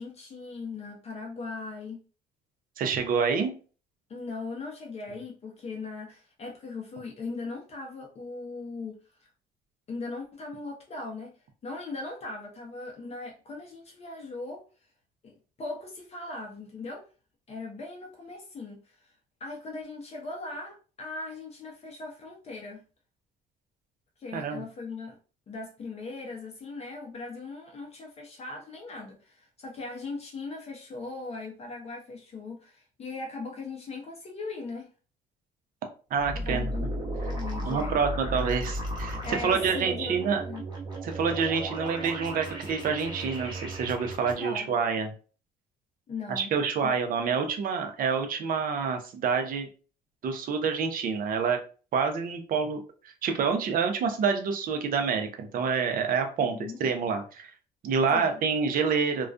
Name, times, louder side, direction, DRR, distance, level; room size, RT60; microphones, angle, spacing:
voice 1, 0.0-2.0 4.1-9.3 9.9-11.3 11.6-14.6 15.2-15.3 15.6-17.0 17.5-19.1 19.4-22.8 24.2-25.2 25.5-34.9 36.4-36.9 37.2-38.0 39.2-40.7 44.4-44.7 46.1-46.5 46.8-46.9 47.3-47.4 56.4-56.8 58.1-58.3, left 3 dB, 35° left, 0 dB, 0.6 m, -39 dB
voice 2, 2.8-3.5 24.3-24.6 36.1-36.7 37.6-40.4 41.0-45.1 46.3-49.7 50.2-51.6 51.9-56.5 56.8-57.5 57.8-59.3, right 5 dB, 55° right, 5 dB, 0.6 m, -27 dB
sound 1, 36.2-44.3, right 1 dB, 25° right, 0.9 m, -35 dB
2.3 x 2.1 x 2.4 m, 0.37 s
cardioid pair, 100°, 17 cm